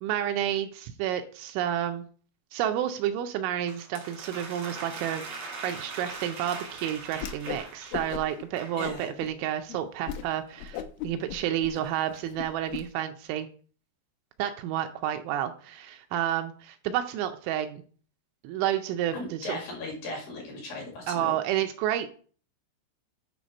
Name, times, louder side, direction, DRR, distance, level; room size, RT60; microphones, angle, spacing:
voice 1, 0.0-2.0 2.5-5.2 5.6-13.5 14.4-17.8 18.4-19.6 21.1-22.1, right 11 dB, 80° right, 7 dB, 2.9 m, -30 dB
sound 1, 3.7-8.8, right 4 dB, 55° right, 1.6 m, -41 dB
Whoosh swoosh swish, 7.2-7.7 7.9-8.4 8.8-9.3 9.7-9.8 10.1-10.3 10.6-12.8, left 9 dB, 85° left, 3.0 m, -37 dB
voice 2, 8.8-9.1 19.1-21.4, left 2 dB, 55° left, 0 dB, 3.2 m, -37 dB
10.0 x 4.0 x 5.1 m, 0.43 s
omnidirectional pair, 5.7 m